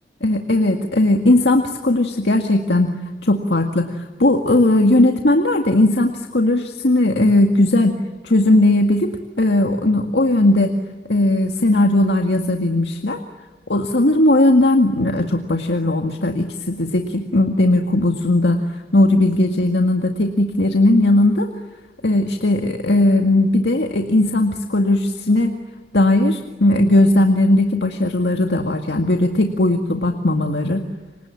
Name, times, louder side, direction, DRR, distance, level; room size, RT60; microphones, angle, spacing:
voice 1, 0.2-8.0 8.2-10.7 11.1-13.2 13.7-18.6 18.9-21.5 22.0-25.5 25.9-30.8, left 1 dB, 75° left, 4 dB, 2.0 m, -17 dB
29.5 x 25.5 x 7.5 m, 1.3 s
head